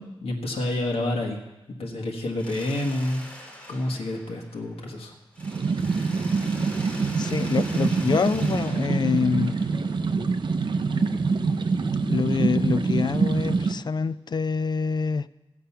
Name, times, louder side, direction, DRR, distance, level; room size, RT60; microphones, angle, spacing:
voice 1, 0.0-1.4 1.8-3.2 3.7-5.1, left 1 dB, 85° left, 1.5 m, -28 dB
Mechanisms, 2.4-5.0 5.3-10.2, equal, 15° left, 2.2 m, -43 dB
sound 1, 5.4-13.7, right 4 dB, 50° right, 0.8 m, -25 dB
voice 2, 7.2-9.6 12.1-15.3, left 5 dB, 45° left, 0.4 m, -26 dB
15.0 x 8.5 x 5.8 m
wide cardioid pair, 110°, 10 cm